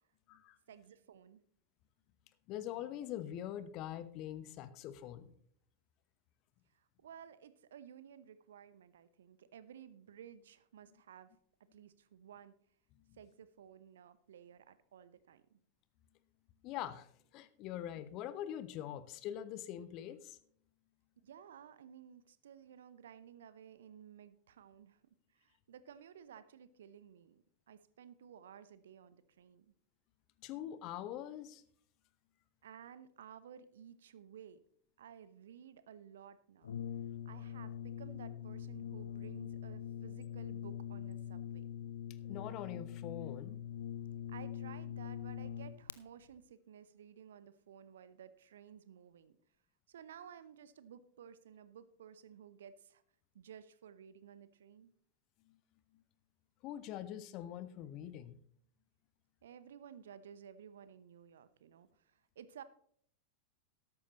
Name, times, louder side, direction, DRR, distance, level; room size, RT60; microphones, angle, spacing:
voice 1, 0.7-1.4 6.7-11.3 11.7-12.5 13.2-15.6 21.2-25.0 25.3-29.7 32.6-34.6 35.0-36.7 37.2-41.7 44.3-49.4 49.9-53.0 53.3-54.9 59.4-62.6, right 8 dB, 60° right, 15 dB, 0.8 m, -55 dB
voice 2, 2.5-5.3 13.1-13.2 16.6-20.4 30.4-31.6 42.3-43.6 55.5-55.6 56.6-58.4, left 11 dB, 40° left, 15 dB, 0.9 m, -44 dB
Brass instrument, 36.6-46.0, left 9 dB, 65° left, 0.5 m, -43 dB
13.5 x 12.0 x 3.0 m, 0.62 s
figure-of-eight pair, 90°, 0 cm